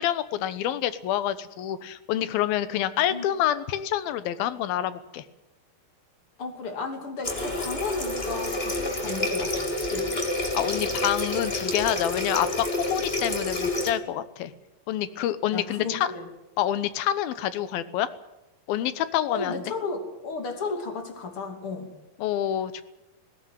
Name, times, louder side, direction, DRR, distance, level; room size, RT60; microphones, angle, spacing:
voice 1, 0.0-5.2 10.5-14.5 14.9-16.1 16.6-18.1 18.7-19.6 22.2-22.8, left 11 dB, 80° left, 14 dB, 2.9 m, -27 dB
voice 2, 6.4-9.6 9.9-10.3 15.5-16.3 19.3-21.9, left 4 dB, 40° left, 6 dB, 3.5 m, -33 dB
Water tap faucet, 7.2-13.9, left 2 dB, 20° left, 2.2 m, -29 dB
20.0 x 17.5 x 9.2 m, 0.99 s
omnidirectional pair, 4.2 m